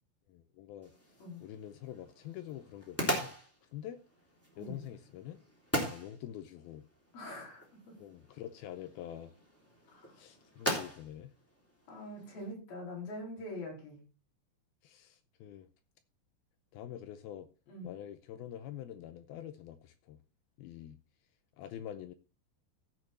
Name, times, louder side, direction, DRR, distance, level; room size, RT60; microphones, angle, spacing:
voice 1, 0.3-0.9 1.4-3.4 3.7-4.0 4.6-5.4 5.8-6.9 8.0-9.3 10.1-11.3 14.8-15.7 16.7-17.5 17.8-20.2 20.6-21.0 21.6-22.1, left 11 dB, 80° left, 2.4 m, -46 dB
sound 1, 0.8-12.5, equal, 5° left, 2.6 m, -41 dB
voice 2, 7.1-7.9 9.9-10.1 11.9-14.0 17.7-17.9, left 1 dB, 65° left, 6.4 m, -44 dB
15.5 x 6.3 x 4.2 m
omnidirectional pair, 4.8 m